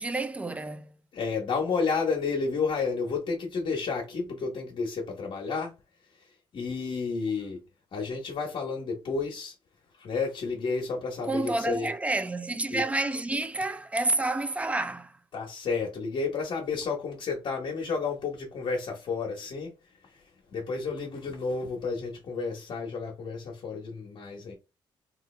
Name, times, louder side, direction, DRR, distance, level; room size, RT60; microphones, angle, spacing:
voice 1, 0.0-0.9 11.3-15.2, right 2 dB, 15° right, 0.3 m, -29 dB
voice 2, 1.1-5.7 6.2-7.6 7.9-9.5 10.0-11.9 12.7-12.8 15.3-19.7 20.0-24.5, left 4 dB, 60° left, 1.0 m, -31 dB
3.2 x 2.4 x 3.2 m
cardioid pair, 105°, 9 cm